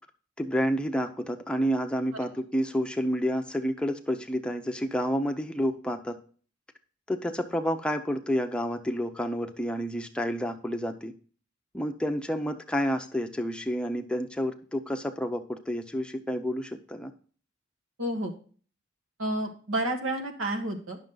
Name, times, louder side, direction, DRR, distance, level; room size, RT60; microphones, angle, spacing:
voice 1, 0.4-6.2 7.1-11.1 11.7-17.1, equal, 5° left, 6 dB, 0.6 m, -29 dB
voice 2, 18.0-18.3 19.2-21.0, right 1 dB, 90° right, 3 dB, 1.7 m, -30 dB
10.5 x 6.3 x 3.8 m, 0.42 s
head